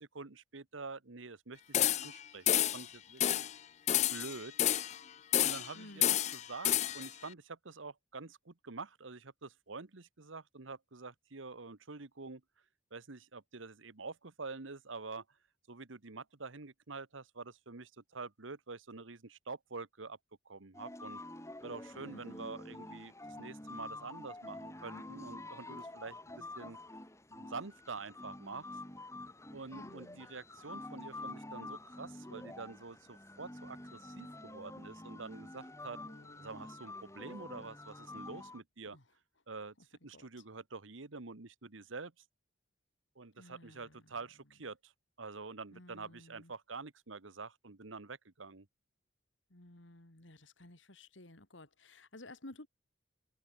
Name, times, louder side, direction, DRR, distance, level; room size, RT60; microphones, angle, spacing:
voice 1, 0.0-3.5 4.1-4.5 5.4-12.4 12.9-15.2 15.7-20.2 20.4-21.2 21.6-26.8 27.3-28.7 29.5-36.0 36.4-39.0 39.5-42.2 43.1-44.9 45.2-48.7, right 4 dB, 85° right, 1.3 m, -47 dB
sound 1, 1.7-2.2 2.5-2.9 3.2-3.5 3.9-5.0 5.3-5.7 6.0-7.1, left 12 dB, 35° left, 0.4 m, -30 dB
voice 2, 5.7-6.2 22.0-22.5 29.7-30.2 36.0-36.5 38.9-39.0 40.1-40.3 43.4-44.0 45.7-46.5 49.5-52.7, left 1 dB, 75° left, 3.0 m, -54 dB
sound 2, 20.7-38.6, left 2 dB, 15° left, 4.4 m, -48 dB
head